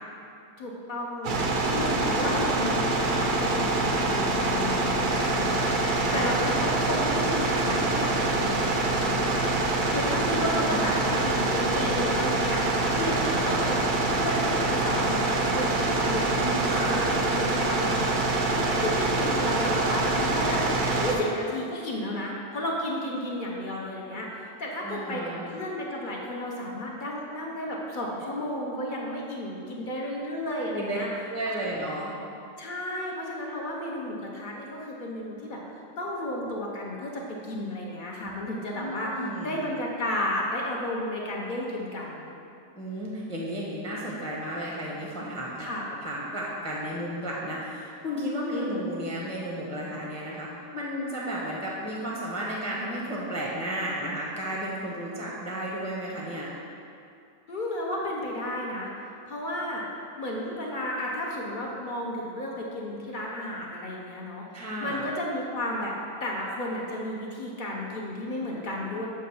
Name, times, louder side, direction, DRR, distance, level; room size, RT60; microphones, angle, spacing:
voice 1, 0.6-1.4 1.6-9.5 9.9-13.8 14.0-18.1 18.5-31.1 32.6-35.6 36.0-39.1 39.4-42.4 45.6-45.8 48.5-48.8 57.5-58.9 59.3-59.8 60.2-64.4 64.8-65.9 66.2-69.1, left 1 dB, 45° left, -2 dB, 0.7 m, -33 dB
sound 1, 1.2-21.2, right 2 dB, 55° right, 0.6 m, -25 dB
voice 2, 6.0-6.6 10.4-10.9 13.3-13.9 16.3-17.1 24.8-25.4 30.7-31.0 31.3-32.1 38.2-39.7 42.8-45.7 46.0-56.5 64.5-65.1, right 1 dB, 5° left, -4 dB, 0.6 m, -33 dB
7.5 x 2.5 x 5.4 m, 2.5 s
omnidirectional pair, 1.3 m